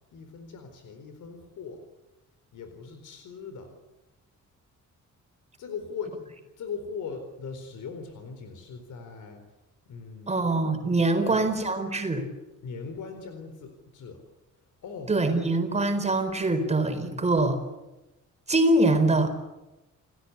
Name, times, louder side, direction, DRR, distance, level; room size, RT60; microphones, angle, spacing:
voice 1, 0.1-1.8 2.5-3.8 5.6-6.2 6.6-9.4 9.9-10.5 11.1-11.6 12.6-14.2 14.8-15.1, left 5 dB, 80° left, 7 dB, 4.3 m, -40 dB
voice 2, 10.3-12.2 15.1-17.6 18.5-19.3, right 2 dB, 20° right, 7 dB, 4.6 m, -24 dB
30.0 x 18.0 x 9.9 m, 1.0 s
wide cardioid pair, 155°, 30 cm